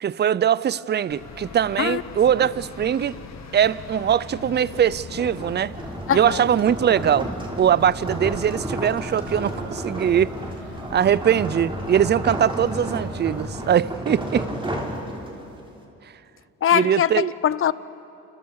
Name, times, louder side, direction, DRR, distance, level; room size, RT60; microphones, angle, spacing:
voice 1, 0.0-3.2 3.5-5.8 6.1-7.3 7.6-10.4 10.9-14.5 16.7-17.3, right 9 dB, 35° right, 0.5 m, -21 dB
sound 1, 0.7-11.2, right 3 dB, 75° right, 6.9 m, -49 dB
sound 2, 1.1-13.7, left 5 dB, 60° left, 2.1 m, -41 dB
sound 3, 4.6-15.6, right 1 dB, 15° right, 3.7 m, -32 dB
voice 2, 6.1-6.4 16.6-17.7, left 9 dB, 45° left, 0.7 m, -22 dB
29.0 x 26.5 x 4.8 m
cardioid pair, 90°, 30 cm